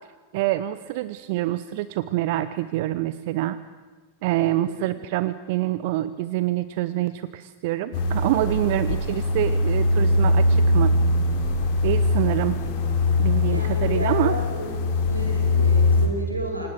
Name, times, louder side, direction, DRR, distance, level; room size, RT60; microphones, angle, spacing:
voice 1, 0.3-3.6 4.2-10.9 11.8-12.6 13.2-14.4, right 15 dB, 50° right, 15 dB, 0.7 m, -26 dB
voice 2, 4.4-4.8 13.5-14.7 15.1-16.7, right 1 dB, 85° right, 3 dB, 5.4 m, -32 dB
sound 1, 7.9-16.1, left 2 dB, 50° left, 4.2 m, -21 dB
27.5 x 18.5 x 7.8 m, 1.4 s
figure-of-eight pair, 90°, 0 cm